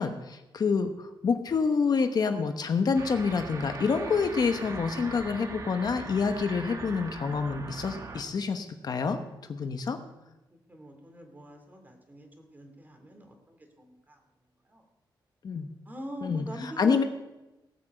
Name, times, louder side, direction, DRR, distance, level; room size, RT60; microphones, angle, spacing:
voice 1, 0.0-9.2 9.5-10.0 15.4-15.7 16.2-17.0, left 5 dB, 55° left, 7 dB, 1.0 m, -27 dB
sound 1, 2.9-8.2, right 3 dB, 40° right, 1.4 m, -40 dB
voice 2, 9.8-10.4 10.7-14.2 14.7-14.8 15.9-17.0, right 1 dB, 20° right, 4 dB, 2.5 m, -44 dB
18.0 x 6.2 x 7.9 m, 1.0 s
wide cardioid pair, 125°, 8 cm